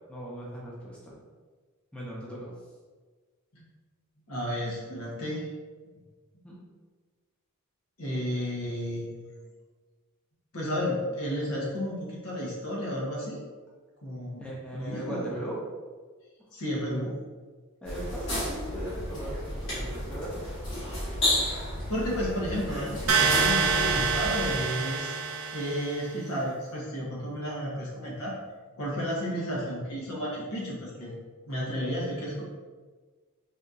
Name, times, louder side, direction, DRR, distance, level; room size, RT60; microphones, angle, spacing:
voice 1, 0.1-1.2 1.9-2.5 6.4-6.6 14.4-15.6 17.8-20.4, right 1 dB, 5° left, -5 dB, 0.6 m, -38 dB
voice 2, 4.3-5.5 8.0-9.3 10.5-13.4 14.0-14.4 14.7-15.3 16.5-17.2 21.4-21.6 21.9-25.2 25.5-28.3 28.7-31.1 31.5-32.4, equal, 90° left, -5 dB, 1.2 m, -32 dB
sound 1, 17.9-24.6, left 1 dB, 55° left, 1.4 m, -32 dB
sound 2, 23.1-26.0, right 5 dB, 85° right, 0.6 m, -26 dB
4.1 x 2.8 x 2.5 m, 1.4 s
head